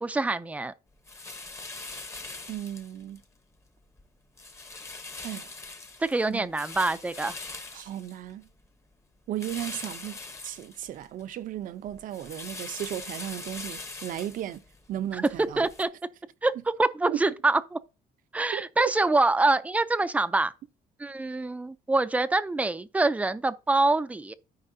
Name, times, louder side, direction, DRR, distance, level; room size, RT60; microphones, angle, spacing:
voice 1, 0.0-0.7 6.0-7.4 15.6-15.9 16.4-17.8 18.3-20.5 21.0-24.3, right 2 dB, 10° right, 0.4 m, -25 dB
sound 1, 1.0-3.2 3.7-4.0 4.4-8.7 9.4-11.2 11.6-15.8, left 3 dB, 20° left, 0.9 m, -42 dB
voice 2, 2.5-3.2 5.2-5.5 6.3-6.5 7.7-8.5 9.3-14.6 14.9-15.7 17.1-17.2 18.5-18.9, right 11 dB, 65° right, 0.6 m, -35 dB
13.5 x 4.7 x 2.7 m
cardioid pair, 135°, 15 cm